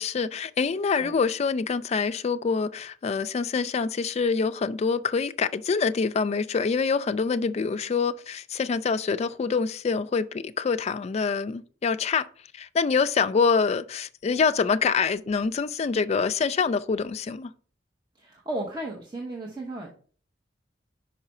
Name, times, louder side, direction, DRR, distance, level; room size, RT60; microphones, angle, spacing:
voice 1, 0.0-12.3 12.5-17.5, left 5 dB, 35° left, 0.3 m, -25 dB
voice 2, 18.1-19.9, right 1 dB, 25° right, 0.8 m, -34 dB
5.4 x 4.8 x 4.2 m
head